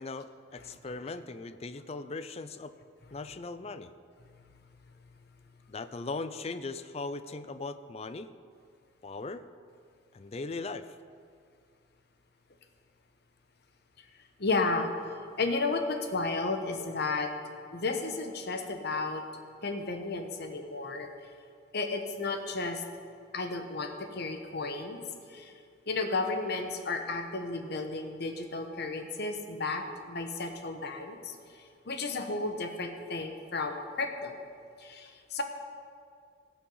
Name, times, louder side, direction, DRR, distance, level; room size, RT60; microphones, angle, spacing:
voice 1, 0.0-2.7 3.1-3.9 5.7-8.3 9.0-9.4 10.1-10.9, left 3 dB, 30° left, 12 dB, 0.4 m, -39 dB
voice 2, 4.2-4.6 14.0-14.1 14.4-17.3 17.7-19.2 19.6-21.1 21.7-22.8 23.3-25.0 25.3-25.6 25.9-34.4 34.8-35.4, left 3 dB, 55° left, 5 dB, 1.1 m, -33 dB
17.5 x 7.3 x 5.5 m, 2.2 s
head